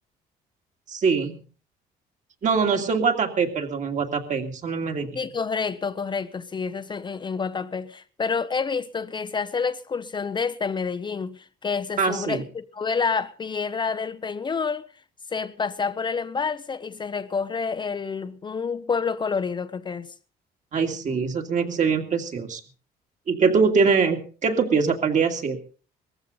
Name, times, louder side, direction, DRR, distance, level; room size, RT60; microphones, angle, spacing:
voice 1, 0.9-1.4 2.4-5.1 12.0-12.4 20.7-22.6 23.3-25.6, right 5 dB, 45° right, 2.4 m, -23 dB
voice 2, 5.1-14.9 15.3-20.1, left 5 dB, 30° left, 0.7 m, -28 dB
19.0 x 15.0 x 4.0 m
cardioid pair, 110°, 17 cm